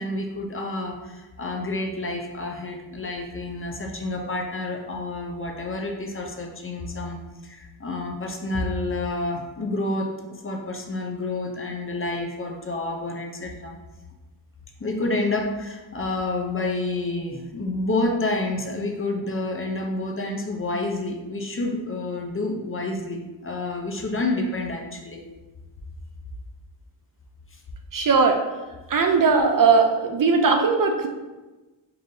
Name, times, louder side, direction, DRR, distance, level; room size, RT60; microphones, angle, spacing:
voice 1, 0.0-13.8 14.8-25.2 27.5-27.6, left 2 dB, 30° left, 1 dB, 0.5 m, -29 dB
voice 2, 27.9-28.4 28.9-31.1, right 4 dB, 45° right, 4 dB, 0.4 m, -19 dB
5.5 x 2.5 x 2.6 m, 1.2 s
cardioid pair, 75°, 48 cm